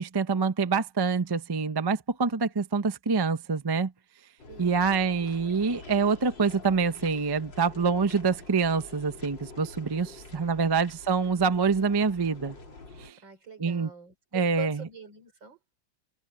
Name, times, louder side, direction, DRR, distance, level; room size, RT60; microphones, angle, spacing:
voice 1, 0.0-3.9 4.6-12.6 13.0-13.2 13.6-13.9 14.3-14.9, right 5 dB, 40° right, 0.3 m, -26 dB
sound 1, 4.4-13.1, left 3 dB, 75° left, 4.3 m, -47 dB
voice 2, 4.5-4.9 10.3-10.8 13.2-15.6, right 5 dB, 80° right, 5.0 m, -45 dB
omnidirectional pair, 2.0 m